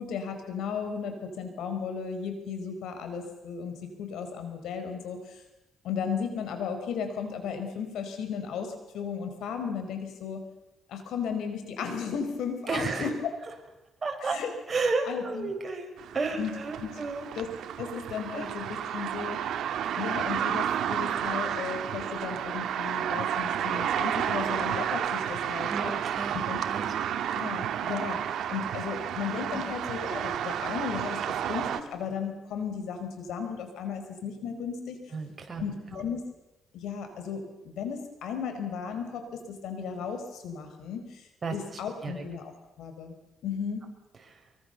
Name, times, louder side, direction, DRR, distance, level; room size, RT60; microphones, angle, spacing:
voice 1, 0.0-5.4 5.8-10.4 10.9-13.3 14.2-14.5 15.1-15.5 16.3-16.5 16.8-16.9 17.4-17.5 17.8-19.4 20.0-25.9 26.5-26.6 27.3-28.2 28.5-31.2 31.5-35.0 35.6-36.3 36.7-42.5 42.8-43.2 43.4-43.9, left 6 dB, 80° left, 7 dB, 5.1 m, -35 dB
voice 2, 12.7-13.1 14.0-14.4 14.7-17.3 18.3-18.5 21.4-21.6 25.1-25.3 25.7-26.4 26.7-26.9 29.5-29.6 35.1-35.6 35.9-36.0 41.4-41.5 42.0-42.2 44.3-44.4, right 3 dB, 35° right, 3 dB, 5.8 m, -32 dB
sound 1, 16.0-31.8, right 9 dB, 75° right, 1.8 m, -31 dB
25.0 x 23.5 x 7.0 m, 0.99 s
cardioid pair, 90°, 0 cm